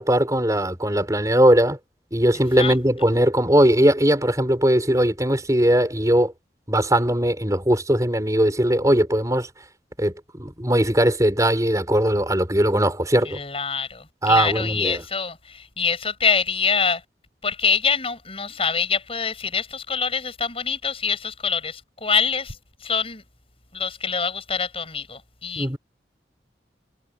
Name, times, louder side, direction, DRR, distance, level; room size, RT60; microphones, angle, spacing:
voice 1, 0.0-1.8 2.1-6.3 6.7-9.5 10.0-13.4 14.2-15.0 25.6-25.8, right 1 dB, 20° right, 6.2 m, -19 dB
voice 2, 13.2-17.0 17.4-23.2 23.7-25.8, left 5 dB, 35° left, 7.8 m, -25 dB
head